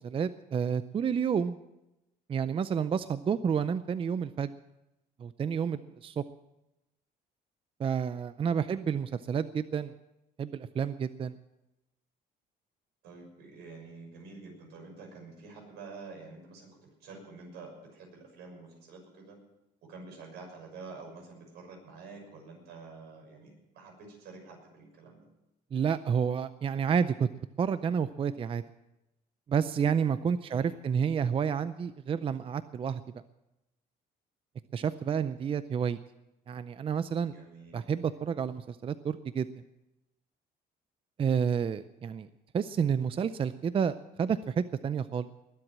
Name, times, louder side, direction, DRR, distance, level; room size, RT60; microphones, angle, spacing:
voice 1, 0.0-1.6 2.3-4.5 5.2-6.2 7.8-9.9 10.4-11.3 25.7-28.6 29.5-33.0 34.7-36.0 36.5-37.3 37.7-39.5 41.2-42.3 42.5-45.3, right 7 dB, 30° right, 14 dB, 0.5 m, -30 dB
voice 2, 8.5-8.9 13.0-19.4 19.8-25.3 30.4-30.8 37.3-37.8, right 4 dB, 80° right, 1 dB, 6.2 m, -48 dB
21.0 x 7.9 x 7.4 m, 0.93 s
cardioid pair, 110°, 17 cm